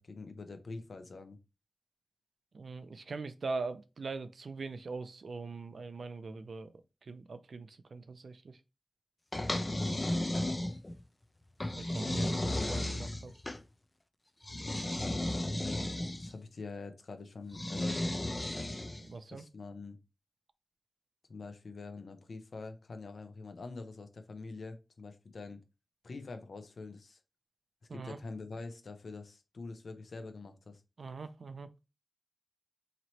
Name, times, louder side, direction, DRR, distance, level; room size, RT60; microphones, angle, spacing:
voice 1, 0.0-1.4 10.2-10.5 15.2-15.3 15.6-18.1 19.3-20.0 21.3-25.6 26.0-27.2 27.9-30.8, left 3 dB, 75° left, 0.7 m, -45 dB
voice 2, 2.5-6.7 7.0-8.6 11.8-13.3 19.1-19.4 27.9-28.2 31.0-31.7, right 4 dB, 75° right, 0.4 m, -42 dB
sound 1, 9.3-11.0 11.6-13.6 14.4-16.3 17.5-19.1, left 1 dB, 25° left, 0.5 m, -34 dB
3.0 x 2.9 x 4.0 m
wide cardioid pair, 110°, 0 cm